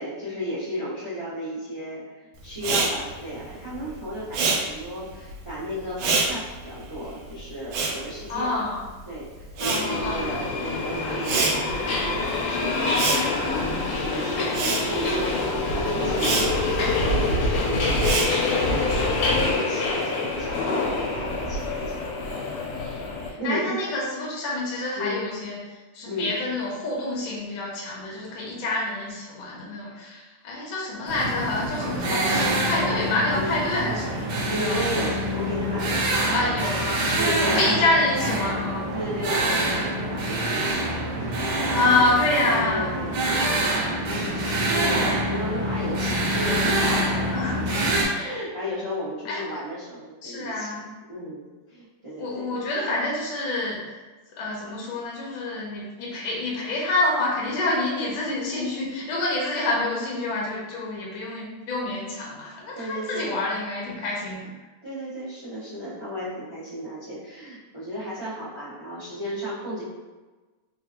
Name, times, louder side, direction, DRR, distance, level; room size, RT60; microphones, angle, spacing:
voice 1, 0.0-8.5 9.1-22.5 22.7-23.1 23.4-23.8 25.0-25.2 26.0-26.3 29.8-30.1 34.5-36.1 36.4-36.5 37.1-37.9 38.9-42.1 42.4-43.8 44.1-52.5 62.7-63.3 64.8-69.8, equal, 30° right, -12 dB, 0.5 m, -34 dB
Respiratory sounds, 2.6-9.0 9.3-18.8, right 4 dB, 85° right, 1.5 m, -28 dB
voice 2, 8.3-8.8 9.6-10.2 23.4-25.6 25.9-34.8 36.3-37.1 37.5-38.8 41.7-43.0 47.3-47.6 49.3-49.4 50.2-50.9 52.2-53.8 54.4-64.5, left 2 dB, 75° left, -4 dB, 1.5 m, -27 dB
Subway metro underground, 9.7-23.3, left 2 dB, 90° left, 1.6 m, -25 dB
sound 1, 31.1-48.1, right 1 dB, 70° right, 1.4 m, -26 dB
3.8 x 2.5 x 2.8 m, 1.2 s
omnidirectional pair, 2.4 m